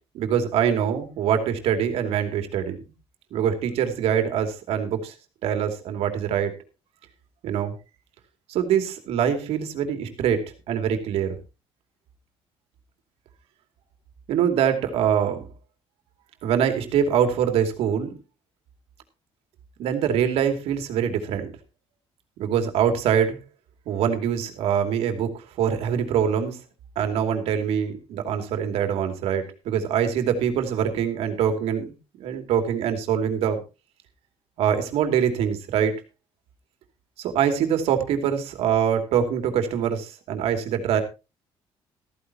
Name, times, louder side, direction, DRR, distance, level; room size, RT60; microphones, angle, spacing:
voice 1, 0.1-2.8 3.3-5.1 5.4-6.5 7.4-7.7 8.5-11.4 14.3-15.5 16.4-18.1 19.8-21.5 22.4-23.4 23.9-26.6 27.0-31.9 32.2-33.6 34.6-36.0 37.2-41.0, right 8 dB, 80° right, 6 dB, 2.7 m, -24 dB
14.5 x 14.5 x 2.9 m, 0.28 s
cardioid pair, 165°, 10 cm